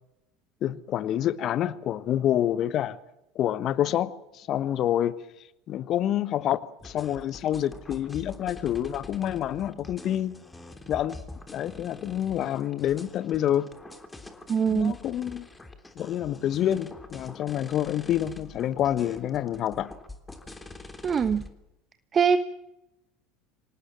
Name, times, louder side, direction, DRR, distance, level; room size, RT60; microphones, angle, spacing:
voice 1, 0.6-3.0 3.3-5.1 5.7-10.3 10.9-11.2 11.5-13.7 14.7-15.5 16.0-19.9, left 11 dB, 45° left, 1.2 m, -27 dB
sound 1, 6.8-21.5, left 2 dB, 15° left, 3.3 m, -45 dB
voice 2, 14.5-14.9 21.0-21.4 22.1-22.4, right 6 dB, 35° right, 1.1 m, -22 dB
26.5 x 18.5 x 7.5 m
hypercardioid pair, 75°, 0 cm